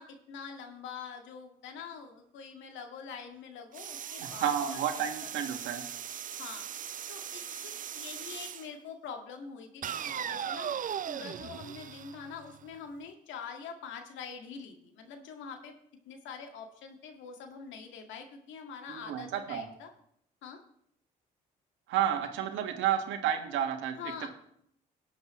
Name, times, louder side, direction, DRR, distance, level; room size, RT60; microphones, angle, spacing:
voice 1, 0.0-5.3 6.4-6.6 7.1-10.7 11.1-15.7 16.1-19.9 20.4-20.6 24.0-24.3, left 6 dB, 70° left, 4 dB, 1.9 m, -45 dB
sound 1, 3.7-8.7 9.8-12.7, right 9 dB, 40° right, 0.5 m, -39 dB
voice 2, 4.2-5.8 18.9-19.6 21.9-24.3, right 9 dB, 70° right, 5 dB, 1.7 m, -31 dB
18.5 x 8.0 x 3.1 m, 0.70 s
hypercardioid pair, 55°, 20 cm